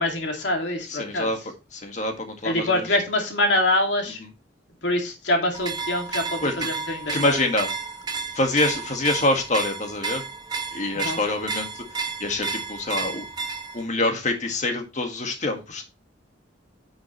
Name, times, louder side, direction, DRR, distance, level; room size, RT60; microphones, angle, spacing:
voice 1, 0.0-1.3 2.4-4.2 4.8-7.4 10.9-11.2, left 1 dB, 75° left, 3 dB, 2.4 m, -25 dB
voice 2, 0.9-1.4 1.7-2.9 6.4-6.5 7.1-7.7 8.3-10.2 10.7-13.2 13.7-15.9, left 2 dB, 40° left, 5 dB, 1.8 m, -26 dB
sound 1, 5.5-13.9, right 4 dB, 25° right, 1.0 m, -32 dB
10.0 x 6.2 x 3.1 m, 0.28 s
head